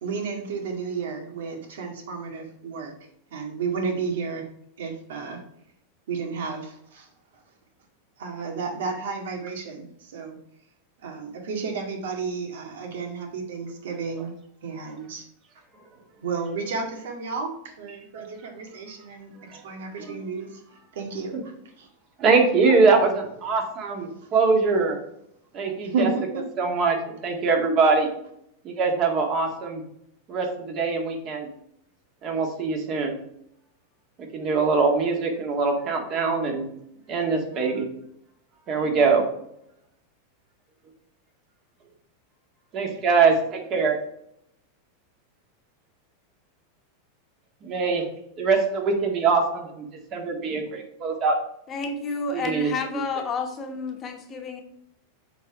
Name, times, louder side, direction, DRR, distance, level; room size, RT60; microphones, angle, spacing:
voice 1, 0.0-2.9 3.3-4.5 4.8-5.4 6.1-7.1 8.2-10.4 11.0-14.3 14.6-15.2 16.2-20.6 20.9-21.9 24.1-24.3 25.8-26.4, right 4 dB, 80° right, 3 dB, 1.9 m, -32 dB
voice 2, 22.2-25.0 25.5-26.1 26.6-28.1 28.6-29.8 30.3-31.5 32.2-33.1 34.3-36.6 37.1-37.8 38.7-39.2 42.7-43.9 47.6-48.1 48.4-51.4 52.3-52.7, right 4 dB, 35° right, 2 dB, 1.9 m, -23 dB
voice 3, 51.7-54.6, left 4 dB, 25° left, 4 dB, 1.2 m, -30 dB
8.2 x 4.1 x 4.8 m, 0.72 s
supercardioid pair, 145°, 0 cm